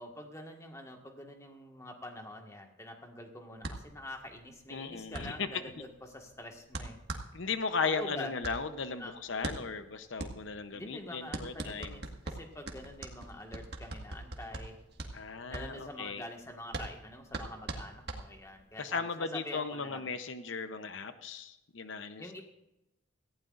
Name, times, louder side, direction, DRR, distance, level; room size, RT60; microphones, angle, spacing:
voice 1, 0.0-7.0 7.8-8.3 9.0-9.2 10.7-14.8 15.5-20.1 22.2-22.4, left 1 dB, 15° left, 3 dB, 1.7 m, -46 dB
sound 1, 3.6-18.7, right 2 dB, 55° right, 1.8 m, -42 dB
voice 2, 4.7-5.6 7.3-12.0 15.1-16.2 18.8-22.4, left 5 dB, 80° left, 10 dB, 0.8 m, -36 dB
18.0 x 15.5 x 2.6 m, 0.93 s
head